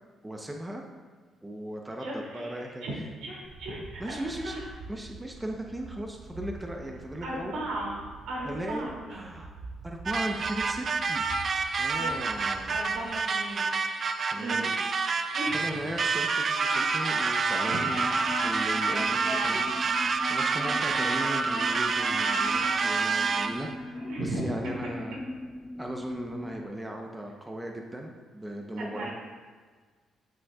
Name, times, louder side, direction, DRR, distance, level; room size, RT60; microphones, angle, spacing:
voice 1, 0.2-0.8 1.4-2.8 4.0-4.6 4.9-7.6 8.4-8.8 9.1-9.5 9.8-11.3 11.8-12.8 14.3-14.7 15.5-18.1 18.4-19.7 20.3-25.2 25.8-29.1, right 1 dB, 10° right, 1 dB, 0.9 m, -37 dB
voice 2, 2.0-2.9 3.2-4.7 7.2-7.9 8.3-9.2 12.0-12.1 12.7-13.7 14.4-14.8 15.3-15.9 16.7-16.8 17.6-18.2 18.9-19.6 20.5-20.8 23.9-24.7 28.9-29.1, right 1 dB, 90° right, -4 dB, 2.7 m, -36 dB
sound 1, 3.4-13.2, right 3 dB, 65° right, 0.8 m, -47 dB
sound 2, 10.1-23.7, right 4 dB, 45° right, 0.5 m, -28 dB
sound 3, 17.8-26.6, left 1 dB, 10° left, 0.4 m, -40 dB
14.5 x 6.3 x 2.4 m, 1.5 s
cardioid pair, 90°, 0 cm